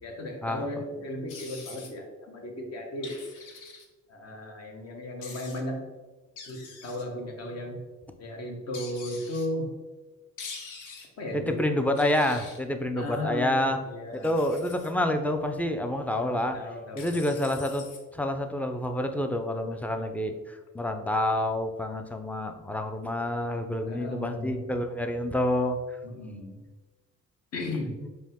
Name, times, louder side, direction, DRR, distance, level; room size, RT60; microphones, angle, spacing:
voice 1, 0.0-3.2 4.1-5.9 6.5-7.8 8.2-9.7 11.2-11.6 13.0-14.4 16.1-17.2 23.9-24.6 26.0-26.6 27.5-28.0, left 1 dB, 55° left, 2 dB, 1.0 m, -35 dB
sound 1, 1.3-1.9 3.0-3.8 5.2-5.6 6.4-7.0 8.7-9.5 10.4-11.1 12.0-12.6 14.1-14.9 17.0-18.0, left 5 dB, 90° left, 0.7 m, -44 dB
voice 2, 11.3-13.8 14.1-16.6 16.9-17.9 18.1-25.8 28.0-28.1, left 1 dB, 5° left, 6 dB, 0.3 m, -28 dB
5.1 x 2.1 x 3.5 m, 1.2 s
cardioid pair, 90°, 30 cm